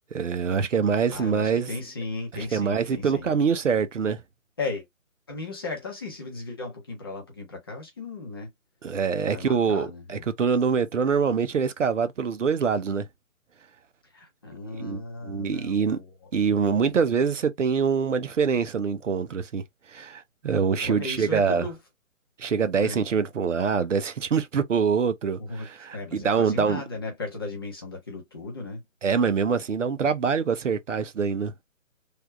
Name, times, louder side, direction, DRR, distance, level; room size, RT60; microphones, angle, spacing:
voice 1, 0.1-1.7 2.5-4.2 8.8-13.1 14.8-15.0 15.2-16.0 16.3-19.6 19.9-21.6 22.4-26.8 29.0-31.5, right 6 dB, 65° right, 0.7 m, -24 dB
voice 2, 1.1-3.3 4.6-4.9 5.3-8.5 9.2-10.2 14.0-16.3 16.6-17.0 20.5-20.6 20.8-21.8 22.8-23.1 25.4-28.8, left 3 dB, 20° left, 0.7 m, -36 dB
3.4 x 2.3 x 3.0 m
figure-of-eight pair, 150°, 41 cm